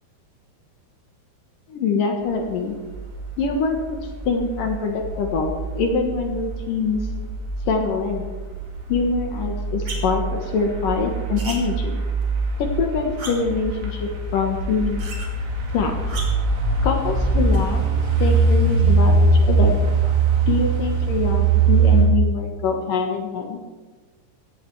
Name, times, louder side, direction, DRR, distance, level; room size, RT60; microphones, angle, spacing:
voice 1, 1.7-2.7 3.4-4.0 4.2-7.0 7.7-8.3 8.9-12.0 12.6-15.0 15.7-15.9 16.8-17.8 18.2-19.8 20.5-23.6, left 4 dB, 65° left, 3 dB, 2.4 m, -24 dB
sound 1, 2.9-22.1, right 4 dB, 90° right, 5.3 m, -22 dB
sound 2, 9.8-10.2 11.4-11.6 12.2-12.3 13.2-13.6 15.0-15.3 16.1-16.5 17.5-17.6, right 3 dB, 35° right, 3.3 m, -34 dB
17.5 x 15.0 x 4.8 m, 1.3 s
omnidirectional pair, 5.4 m